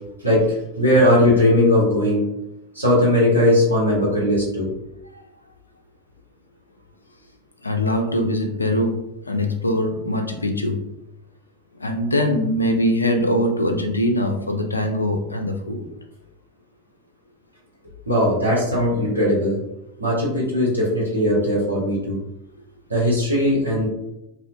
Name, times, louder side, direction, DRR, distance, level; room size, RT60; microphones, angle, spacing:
voice 1, 0.2-2.3 2.7-4.7 18.1-19.6 20.0-22.2 22.9-23.9, left 1 dB, 85° right, -6 dB, 1.0 m, -19 dB
voice 2, 7.6-10.8 11.8-15.8, left 1 dB, 85° left, 4 dB, 0.3 m, -22 dB
2.7 x 2.1 x 2.5 m, 0.87 s
figure-of-eight pair, 85°, 0 cm